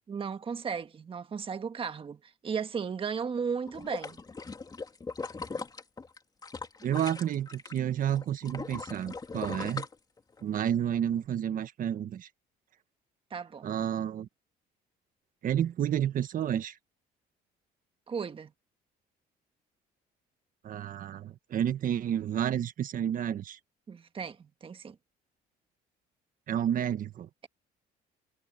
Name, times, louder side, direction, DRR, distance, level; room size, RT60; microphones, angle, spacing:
voice 1, 0.1-4.2 13.3-13.7 18.1-18.5 23.9-24.9, right 6 dB, 30° right, 1.4 m, -35 dB
sound 1, 3.7-7.8 8.1-10.6 11.0-11.1, left 4 dB, 25° left, 3.2 m, -39 dB
voice 2, 6.8-9.9 10.4-12.3 13.6-14.3 15.4-16.8 20.6-23.6 26.5-27.3, right 10 dB, 55° right, 1.5 m, -30 dB
cardioid pair, 110°, 17 cm